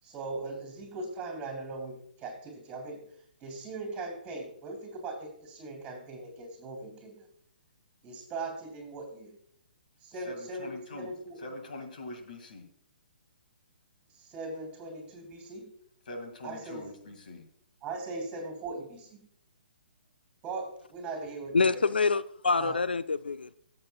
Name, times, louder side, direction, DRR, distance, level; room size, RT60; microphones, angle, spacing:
voice 1, 0.0-3.0 3.4-7.1 8.0-9.3 10.0-11.4 14.2-15.6 16.4-16.9 17.8-19.2 20.4-21.9 22.5-22.8, right 3 dB, 20° right, 3.3 m, -39 dB
voice 2, 10.3-11.1 11.4-12.7 16.1-17.4, left 2 dB, 60° left, 2.2 m, -43 dB
voice 3, 21.5-23.5, left 4 dB, 85° left, 0.4 m, -26 dB
15.0 x 7.8 x 2.3 m
figure-of-eight pair, 130°, 5 cm